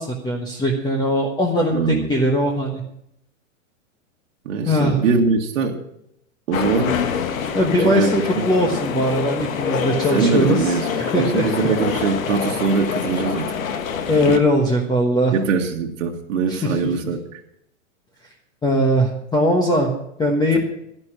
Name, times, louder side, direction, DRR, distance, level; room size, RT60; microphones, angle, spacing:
voice 1, 0.0-2.8 4.7-5.0 7.5-11.5 14.1-15.3 16.5-16.8 18.6-19.9 20.2-20.6, equal, 10° left, 1 dB, 1.2 m, -20 dB
voice 2, 1.7-2.1 4.5-5.8 6.5-7.0 7.8-8.7 10.1-13.5 15.3-17.2, right 5 dB, 70° right, 1 dB, 1.9 m, -22 dB
sound 1, 6.5-14.4, left 7 dB, 85° left, 1.6 m, -26 dB
11.5 x 10.5 x 6.2 m, 0.78 s
hypercardioid pair, 135°, 40 cm